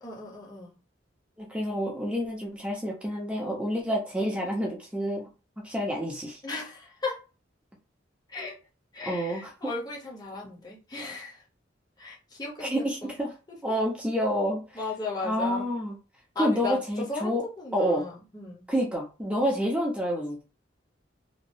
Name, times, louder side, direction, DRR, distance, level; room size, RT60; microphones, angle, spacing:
voice 1, 0.0-0.7 6.4-7.2 8.3-8.5 8.9-11.4 12.0-13.1 13.5-13.6 14.7-15.7 16.3-18.7, left 3 dB, 20° left, 0.9 m, -36 dB
voice 2, 1.4-5.3 5.6-6.4 9.0-9.5 10.4-10.5 12.6-13.3 13.6-14.6 15.2-16.0 16.4-17.4 17.7-18.1 18.7-20.4, equal, 5° right, 0.8 m, -28 dB
2.9 x 2.6 x 2.7 m
head